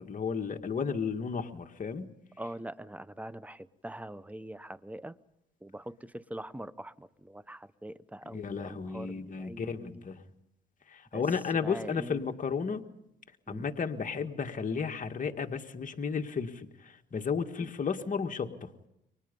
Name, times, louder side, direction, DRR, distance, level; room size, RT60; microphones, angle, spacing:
voice 1, 0.0-2.1 8.3-10.2 10.9-12.8 13.5-18.7, left 5 dB, 40° left, 5 dB, 1.9 m, -33 dB
voice 2, 2.4-5.2 5.6-10.0 11.1-11.2 11.6-12.2 13.5-13.7, right 1 dB, 5° right, 15 dB, 1.0 m, -43 dB
30.0 x 24.5 x 5.4 m, 0.82 s
cardioid pair, 90°, 20 cm